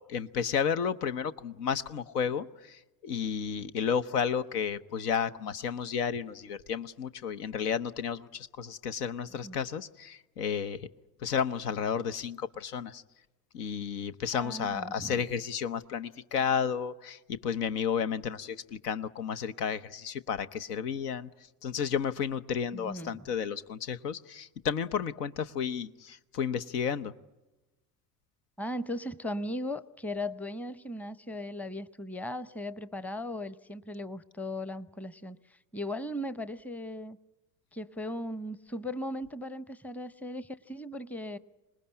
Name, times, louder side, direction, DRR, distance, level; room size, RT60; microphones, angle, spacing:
voice 1, 0.0-10.9 11.2-13.0 13.5-21.3 21.6-27.1, left 7 dB, 75° left, 12 dB, 1.0 m, -32 dB
voice 2, 14.3-15.2 22.7-23.3 28.6-37.2 37.7-41.4, left 1 dB, 5° left, 16 dB, 0.8 m, -37 dB
26.5 x 20.0 x 9.7 m, 1.1 s
hypercardioid pair, 65°, 47 cm